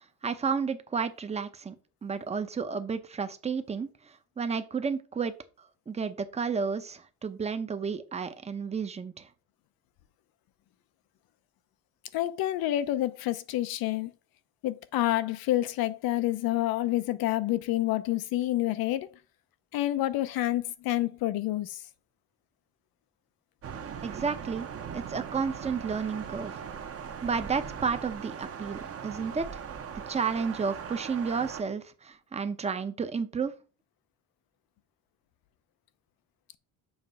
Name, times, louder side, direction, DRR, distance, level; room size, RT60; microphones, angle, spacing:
voice 1, 0.2-1.7 2.0-5.3 5.9-9.3 24.0-24.7 24.9-26.6 27.2-29.6 30.1-33.5, right 5 dB, 20° right, 0.6 m, -32 dB
voice 2, 12.1-14.1 14.6-19.1 19.7-21.8, left 15 dB, 85° left, 0.7 m, -28 dB
Thunder, 23.6-31.6, right 7 dB, 40° right, 0.8 m, -40 dB
7.2 x 3.2 x 5.3 m
cardioid pair, 150°, 35 cm